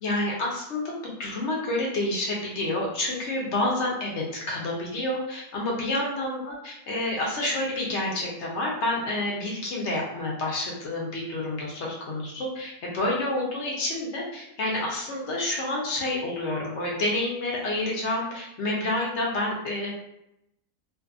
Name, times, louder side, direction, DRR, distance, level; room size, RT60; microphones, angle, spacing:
voice 1, 0.0-19.9, left 1 dB, 55° left, -3 dB, 0.9 m, -29 dB
2.6 x 2.5 x 2.5 m, 0.81 s
omnidirectional pair, 1.7 m